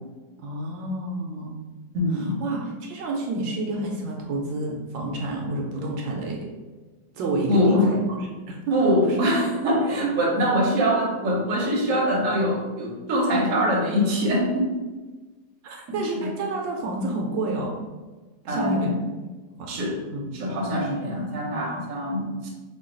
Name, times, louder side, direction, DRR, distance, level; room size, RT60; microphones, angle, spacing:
voice 1, 0.4-1.6 2.1-6.4 7.1-8.0 8.5-8.8 9.0-9.2 10.0-10.1 15.6-17.8 18.4-18.9 19.6-19.7 20.1-20.4 20.8-21.0, right 2 dB, 75° right, 0 dB, 1.3 m, -29 dB
voice 2, 1.9-2.4 7.5-7.9 8.7-14.7 15.9-16.3 18.5-19.0 19.7-20.0 20.3-22.5, equal, 55° right, -2 dB, 1.0 m, -23 dB
3.8 x 2.3 x 3.7 m, 1.3 s
omnidirectional pair, 2.0 m